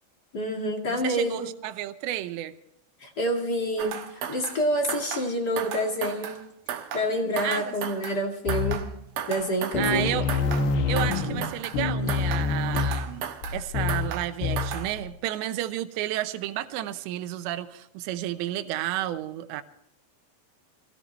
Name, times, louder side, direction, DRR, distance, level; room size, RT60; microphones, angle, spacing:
voice 1, 0.3-1.5 3.0-6.4 6.9-8.8 9.3-10.0, equal, 40° left, 1.5 m, -27 dB
voice 2, 0.9-2.5 7.4-7.8 9.8-10.3 10.9-19.6, right 13 dB, 85° right, 3.1 m, -31 dB
sound 1, 3.8-4.6 4.9-5.3 5.6-6.4 6.7-7.1 7.4-8.2 8.5-8.9 9.2-10.0 10.3-10.7 11.0-11.8 12.1-12.5 12.8-13.6 13.9-14.3 14.6-14.9, right 9 dB, 70° right, 2.3 m, -35 dB
sound 2, 8.5-9.1 9.4-9.5 9.7-15.1, left 4 dB, 70° left, 3.3 m, -27 dB
25.0 x 16.5 x 3.2 m
omnidirectional pair, 5.1 m